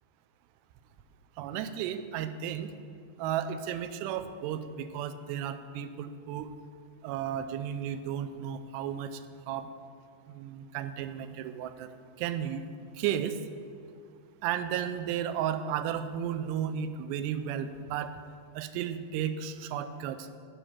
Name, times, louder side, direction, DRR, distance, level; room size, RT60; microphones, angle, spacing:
voice 1, 1.4-2.7 3.2-6.5 7.0-9.2 9.5-9.7 10.3-11.9 12.2-12.6 13.0-13.4 14.4-18.1 18.6-20.3, right 9 dB, 85° right, 10 dB, 2.7 m, -33 dB
10.5 x 5.0 x 7.2 m, 2.2 s
omnidirectional pair, 4.8 m